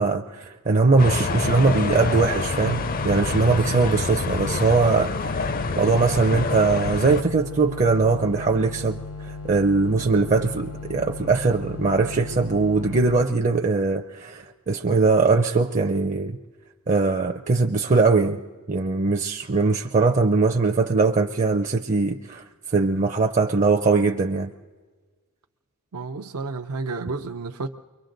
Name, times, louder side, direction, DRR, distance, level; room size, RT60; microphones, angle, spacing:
voice 1, 0.0-5.3 5.8-16.4 16.9-18.4 18.7-24.5, right 3 dB, 35° right, 0.5 m, -21 dB
sound 1, 1.0-7.2, left 4 dB, 40° left, 0.5 m, -27 dB
sound 2, 2.6-13.2, left 3 dB, 70° left, 0.9 m, -37 dB
voice 2, 25.9-27.7, right 3 dB, 80° right, 0.6 m, -31 dB
29.5 x 23.0 x 3.9 m
head